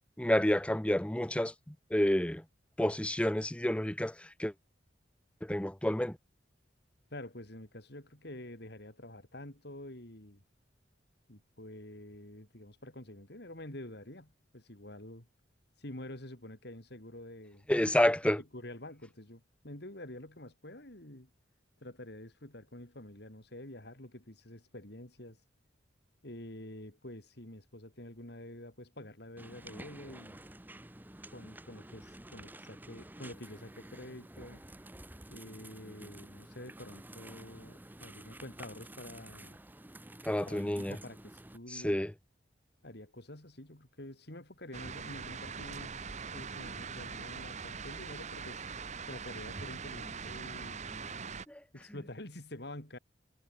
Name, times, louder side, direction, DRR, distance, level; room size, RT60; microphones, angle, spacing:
voice 1, 0.2-2.4 2.8-4.5 5.4-6.2 17.7-18.4 40.2-41.0 41.7-42.1 51.5-51.6, left 1 dB, 5° left, 0.6 m, -29 dB
voice 2, 7.1-10.4 11.3-15.3 15.8-17.7 18.5-21.3 21.8-25.4 26.2-30.4 31.3-34.6 35.3-39.6 40.4-42.0 42.8-46.0 46.3-48.6 49.1-51.2 51.7-53.0, left 1 dB, 60° left, 4.0 m, -48 dB
sound 1, 29.4-41.6, right 1 dB, 10° right, 0.9 m, -51 dB
sound 2, 44.7-51.5, right 5 dB, 40° right, 1.2 m, -42 dB
head